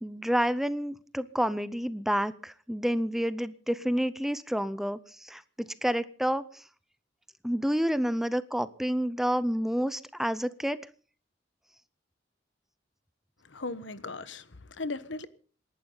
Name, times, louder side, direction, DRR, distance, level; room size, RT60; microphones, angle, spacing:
voice 1, 0.0-6.6 7.4-10.8, equal, ahead, 0.6 m, -29 dB
voice 2, 13.5-15.3, left 3 dB, 75° left, 1.2 m, -37 dB
27.5 x 11.5 x 3.9 m
head